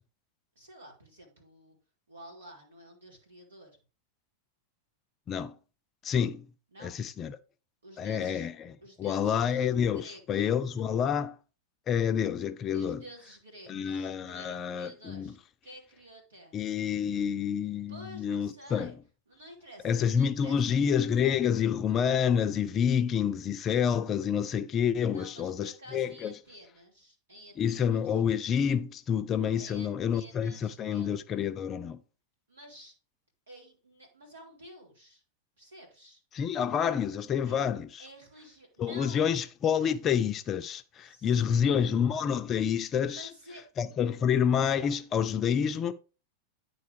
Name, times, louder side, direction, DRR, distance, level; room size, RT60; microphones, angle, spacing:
voice 1, 0.5-1.8 2.1-3.7 6.7-7.0 7.8-8.5 8.8-10.5 12.7-15.4 15.6-16.7 17.9-19.0 19.3-20.8 25.1-28.2 29.5-31.1 32.5-32.9 33.5-35.2 35.6-36.2 37.5-37.6 38.0-39.4 41.0-41.9 43.1-43.6, equal, 70° right, 2.9 m, -51 dB
voice 2, 6.0-6.5 6.8-7.4 8.0-11.4 11.9-13.0 13.7-15.3 16.5-18.9 19.8-26.3 27.6-32.0 36.3-38.0 38.8-43.3 43.8-45.9, left 8 dB, 30° left, 0.5 m, -28 dB
9.6 x 4.1 x 4.8 m
figure-of-eight pair, 90°, 0 cm